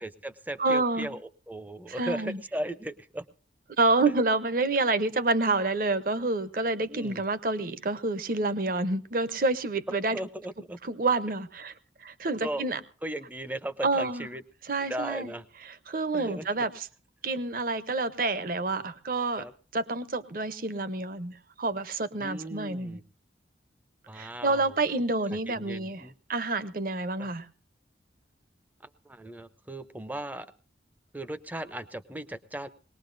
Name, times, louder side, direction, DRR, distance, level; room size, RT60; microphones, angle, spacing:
voice 1, 0.0-1.2 1.5-3.2 6.9-7.2 9.9-10.8 12.4-12.7 13.0-14.4 14.9-15.4 16.1-16.7 19.4-19.5 22.2-23.0 24.1-24.7 25.5-26.1 27.2-27.3 29.1-30.5 31.1-32.7, right 1 dB, 10° right, 13 dB, 0.6 m, -37 dB
voice 2, 0.6-1.1 1.9-2.4 3.8-10.2 10.8-11.7 12.0-12.8 13.8-14.3 14.6-15.3 15.6-16.9 17.2-19.4 19.7-23.0 24.1-27.5, right 3 dB, 50° right, 13 dB, 0.8 m, -28 dB
20.5 x 19.0 x 2.6 m, 0.39 s
head